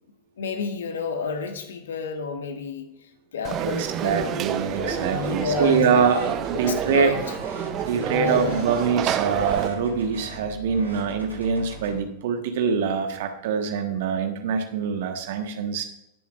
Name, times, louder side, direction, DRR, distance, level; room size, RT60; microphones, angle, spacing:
voice 1, 0.4-2.9 3.3-6.1 6.7-7.2 8.0-8.7, left 5 dB, 65° left, 7 dB, 1.2 m, -30 dB
Conversation / Crowd, 3.4-9.7, right 9 dB, 35° right, 0.6 m, -29 dB
voice 2, 3.6-7.1 7.8-15.8, right 6 dB, 55° right, 7 dB, 1.3 m, -24 dB
sound 1, 4.5-12.0, right 1 dB, 85° right, 2.7 m, -40 dB
18.0 x 7.1 x 2.5 m, 0.85 s
figure-of-eight pair, 90°, 0 cm